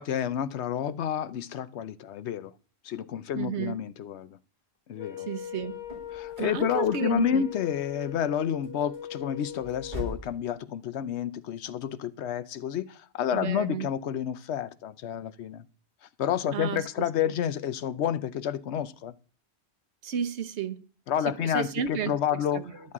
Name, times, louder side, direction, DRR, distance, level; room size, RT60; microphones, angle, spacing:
voice 1, 0.0-2.5 2.8-4.4 4.9-5.3 6.1-15.6 16.2-19.1 21.1-22.9, left 9 dB, 80° left, 1.0 m, -30 dB
voice 2, 3.3-3.8 5.3-5.8 6.4-7.4 13.3-13.9 16.5-16.8 20.0-20.8 21.3-22.7, right 7 dB, 85° right, 1.2 m, -32 dB
Wind instrument woodwind instrument, 5.0-10.2, left 10 dB, 40° left, 1.0 m, -40 dB
sound 1, 5.4-10.4, left 1 dB, 45° right, 6.2 m, -43 dB
13.0 x 11.0 x 3.7 m
omnidirectional pair, 1.1 m